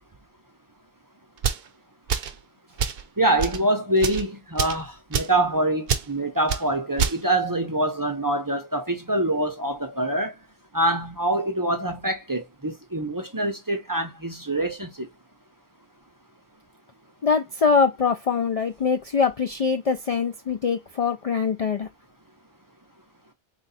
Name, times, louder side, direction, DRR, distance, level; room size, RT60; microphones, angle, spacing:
sound 1, 1.4-1.7 2.1-2.4 2.8-3.0 3.4-3.6 4.0-4.2 4.6-4.8 5.1-5.4 5.9-6.1 6.5-6.6 7.0-7.2, right 7 dB, 70° right, 0.8 m, -26 dB
voice 1, 3.2-10.3 10.7-15.1, right 1 dB, 25° right, 0.6 m, -25 dB
voice 2, 17.2-21.9, left 5 dB, 50° left, 0.4 m, -23 dB
3.8 x 2.3 x 4.0 m
omnidirectional pair, 1.0 m